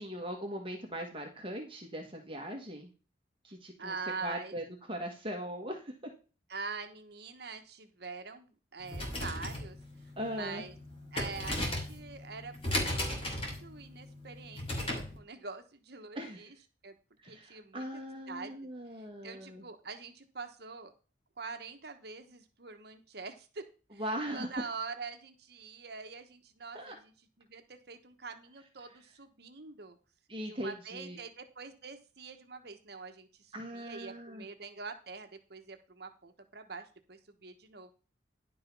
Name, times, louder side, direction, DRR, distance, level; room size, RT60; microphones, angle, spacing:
voice 1, 0.0-2.9 3.4-3.9 4.2-5.9 10.2-10.6 16.1-16.4 17.2-19.6 24.0-24.5 26.7-26.9 30.3-31.2 33.5-34.4, equal, 30° right, 2 dB, 1.5 m, -40 dB
voice 2, 3.8-4.5 6.5-9.8 10.3-10.7 11.1-12.6 13.2-16.6 16.8-16.9 17.3-18.0 18.3-18.5 18.9-20.9 21.4-23.6 23.9-24.0 24.3-27.1 27.4-30.0 30.5-37.9, right 4 dB, 60° right, 7 dB, 1.2 m, -44 dB
sound 1, 8.8-15.2, left 1 dB, 30° left, 2.9 m, -36 dB
11.0 x 5.4 x 5.4 m, 0.34 s
head